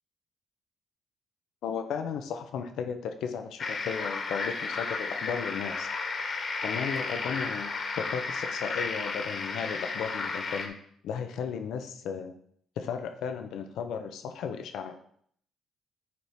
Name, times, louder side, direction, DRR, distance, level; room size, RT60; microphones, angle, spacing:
voice 1, 1.6-5.9 6.6-7.7 8.0-10.7 11.0-12.3 12.8-15.0, left 7 dB, 75° left, 6 dB, 1.0 m, -35 dB
sound 1, 3.6-10.7, left 4 dB, 55° left, 1.8 m, -33 dB
9.8 x 4.6 x 4.3 m, 0.65 s
hypercardioid pair, 50°, 0 cm